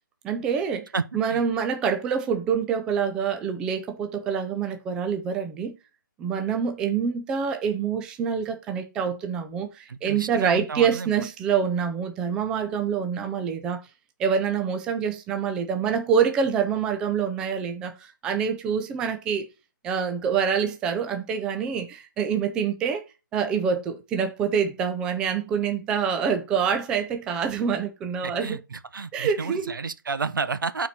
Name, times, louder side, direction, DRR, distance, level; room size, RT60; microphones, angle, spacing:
voice 1, 0.2-5.7 6.2-13.8 14.2-19.5 19.8-23.0 23.3-28.6 29.1-29.7, right 7 dB, 5° right, 0.4 m, -26 dB
voice 2, 0.9-1.4 9.9-11.1 28.2-30.9, right 4 dB, 75° right, 1.0 m, -31 dB
9.2 x 4.3 x 4.2 m
hypercardioid pair, 165°, 11 cm